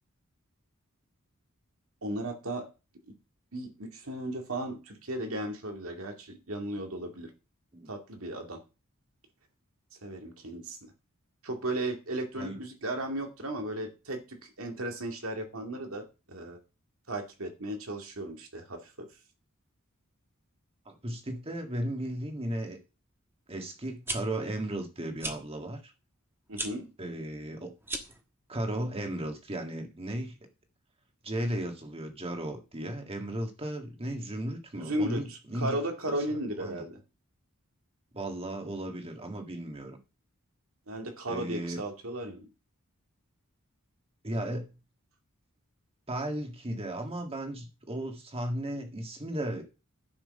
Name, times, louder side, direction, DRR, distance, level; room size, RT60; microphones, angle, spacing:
voice 1, 2.0-2.7 3.1-3.2 3.5-7.3 7.9-8.6 10.0-10.8 11.4-16.6 17.1-19.1 26.5-26.9 34.7-37.0 40.9-42.5, right 1 dB, 70° right, 2.3 m, -35 dB
voice 2, 20.9-22.8 23.5-25.9 27.0-27.7 28.5-30.4 31.2-35.8 36.6-36.8 38.1-40.0 41.3-41.8 44.2-44.7 46.1-49.6, right 1 dB, 25° right, 1.9 m, -35 dB
sound 1, 23.9-24.2 25.2-25.4 26.5-26.7 27.8-28.2, right 2 dB, 10° right, 1.4 m, -35 dB
10.5 x 6.1 x 5.4 m
head